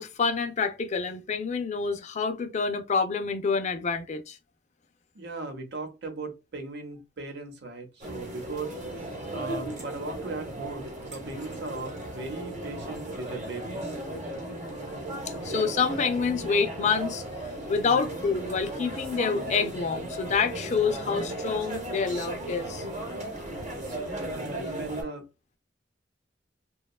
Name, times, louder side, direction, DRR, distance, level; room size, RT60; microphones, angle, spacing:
voice 1, 0.0-4.4 15.4-17.2 17.7-22.8, left 5 dB, 40° left, 0.4 m, -27 dB
voice 2, 5.1-14.0 24.0-25.2, right 3 dB, 65° right, 0.8 m, -38 dB
sound 1, 8.0-25.0, right 1 dB, 40° right, 1.0 m, -36 dB
2.8 x 2.3 x 2.2 m
head